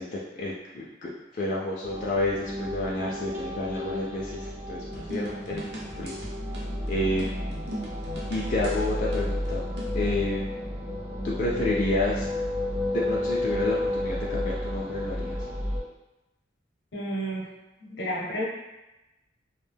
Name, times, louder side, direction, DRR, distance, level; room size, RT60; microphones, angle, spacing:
voice 1, 0.0-5.6 6.0-6.2 6.9-7.5 8.3-9.6 9.9-10.5 11.2-12.3 12.9-15.4, left 2 dB, 45° left, -5 dB, 0.3 m, -30 dB
sound 1, 1.8-15.8, left 1 dB, 10° right, 0.5 m, -31 dB
sound 2, 4.9-10.0, equal, 60° right, 0.7 m, -40 dB
voice 2, 16.9-17.5 17.8-18.4, equal, 75° left, -2 dB, 0.6 m, -31 dB
2.3 x 2.1 x 3.3 m, 1.0 s
head